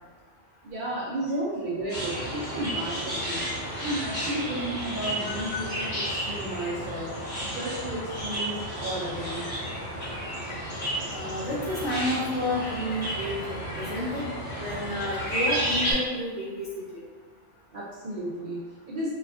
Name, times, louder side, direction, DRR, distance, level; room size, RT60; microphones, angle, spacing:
voice 1, 0.6-3.4 3.8-7.1 7.4-9.5 17.7-19.1, right 1 dB, 60° right, -6 dB, 0.6 m, -33 dB
sound 1, 1.9-15.9, equal, 35° left, 1.1 m, -32 dB
voice 2, 11.1-14.2 14.5-17.0, left 1 dB, 75° left, -6 dB, 1.2 m, -31 dB
4.1 x 2.3 x 2.4 m, 1.4 s
omnidirectional pair, 1.3 m